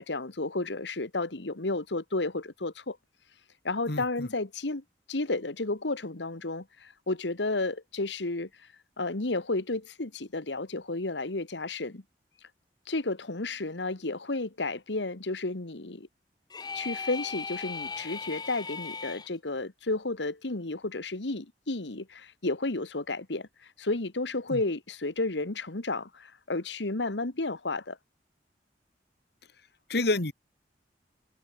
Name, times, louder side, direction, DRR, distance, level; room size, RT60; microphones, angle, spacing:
voice 1, 0.0-3.0 3.6-4.8 5.1-8.5 9.0-12.0 12.9-16.1 16.7-23.5 23.8-28.0, left 2 dB, 80° left, 1.6 m, -32 dB
voice 2, 3.9-4.3 24.5-24.6 29.9-30.3, left 2 dB, 65° left, 2.2 m, -28 dB
sound 1, 16.5-19.3, left 5 dB, 25° left, 0.6 m, -37 dB
head